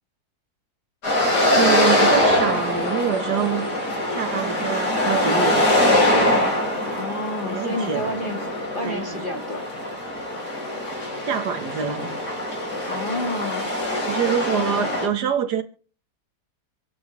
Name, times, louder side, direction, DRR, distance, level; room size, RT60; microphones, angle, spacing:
sound 1, 1.0-15.1, left 1 dB, 80° left, 4.8 m, -23 dB
voice 1, 1.1-3.7 4.1-5.7 7.4-8.1 8.8-9.2 11.2-12.1 14.1-15.6, right 8 dB, 75° right, 1.9 m, -26 dB
voice 2, 6.9-8.4 8.7-9.6 12.9-13.6, left 1 dB, 30° left, 1.8 m, -29 dB
26.0 x 9.3 x 3.2 m
omnidirectional pair, 1.8 m